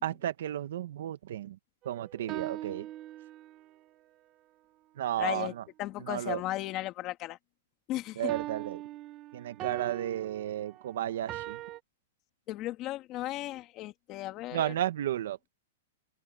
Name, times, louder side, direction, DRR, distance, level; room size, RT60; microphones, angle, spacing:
voice 1, 0.0-1.6 1.8-2.9 5.0-5.6 6.0-6.4 8.2-8.8 9.3-11.6 14.5-15.4, right 12 dB, 60° right, 1.5 m, -33 dB
sound 1, 1.8-3.7 8.3-11.8, right 14 dB, 25° right, 1.3 m, -41 dB
voice 2, 5.2-5.5 5.8-7.4 7.9-8.3 12.5-14.7, left 16 dB, 25° left, 2.3 m, -35 dB
hypercardioid pair, 170°, 0 cm